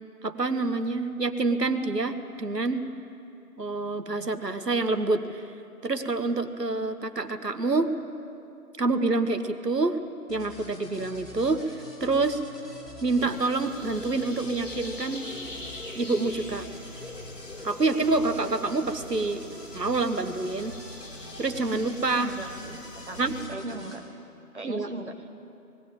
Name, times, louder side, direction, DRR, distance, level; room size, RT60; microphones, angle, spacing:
voice 1, 0.2-2.9 3.6-5.4 5.8-7.9 8.8-10.0 10.3-11.7 12.0-12.4 13.0-15.2 15.9-16.7 17.6-19.4 19.7-20.7 21.4-22.3 23.2-23.3 24.6-24.9, right 3 dB, 85° right, 9 dB, 1.4 m, -27 dB
sound 1, 10.3-24.0, left 2 dB, 85° left, 5.9 m, -46 dB
sound 2, 13.2-23.5, left 1 dB, 50° left, 1.9 m, -42 dB
voice 2, 22.2-24.0 24.5-25.3, right 2 dB, 45° right, 4 dB, 1.2 m, -38 dB
19.5 x 16.0 x 8.9 m, 2.7 s
figure-of-eight pair, 170°, 47 cm